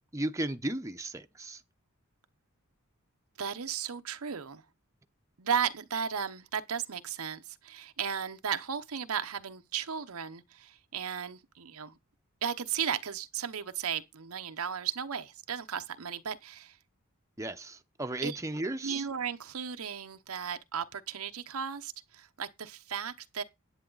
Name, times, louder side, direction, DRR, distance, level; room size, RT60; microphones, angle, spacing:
voice 1, 0.1-1.6 17.4-19.0, right 1 dB, 15° right, 0.8 m, -35 dB
voice 2, 3.4-4.6 5.4-12.0 12.4-16.8 18.2-18.4 18.8-23.4, right 7 dB, 90° right, 0.9 m, -35 dB
10.5 x 8.9 x 4.0 m
head